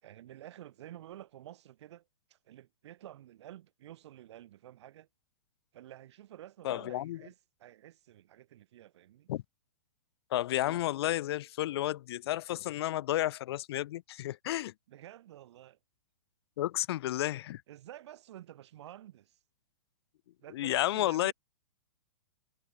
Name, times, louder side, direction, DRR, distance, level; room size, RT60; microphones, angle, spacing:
voice 1, 0.0-2.0 2.3-5.1 5.7-9.3 14.9-15.8 17.7-19.4 20.4-21.3, right 13 dB, 55° right, 5.8 m, -51 dB
voice 2, 6.6-7.2 9.3-9.4 10.3-14.7 16.6-17.6 20.5-21.3, left 14 dB, 50° left, 1.0 m, -32 dB
hypercardioid pair, 160°, 17 cm